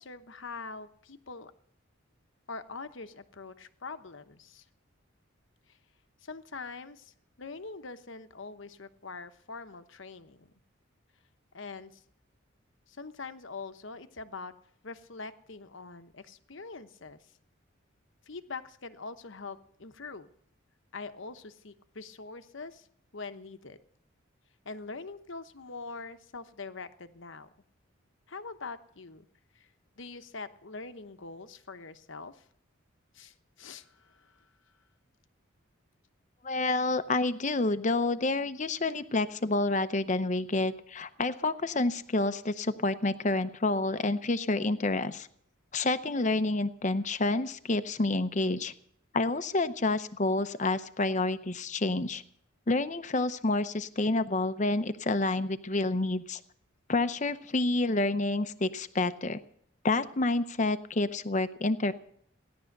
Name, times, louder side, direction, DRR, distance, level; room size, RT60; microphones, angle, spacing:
voice 1, 0.0-1.5 2.5-4.6 5.7-5.8 6.2-10.5 11.5-12.0 12.9-14.5 14.8-17.3 18.3-20.3 20.9-22.9 23.1-23.8 24.6-27.5 28.3-29.3 29.5-29.7 30.0-32.4 33.1-34.5, left 4 dB, 65° left, 10 dB, 1.0 m, -43 dB
voice 2, 36.4-45.3 45.7-48.7 49.1-52.2 52.7-56.4 56.9-59.4 59.8-61.9, left 2 dB, 35° left, 11 dB, 0.7 m, -28 dB
17.0 x 11.5 x 6.6 m, 0.65 s
head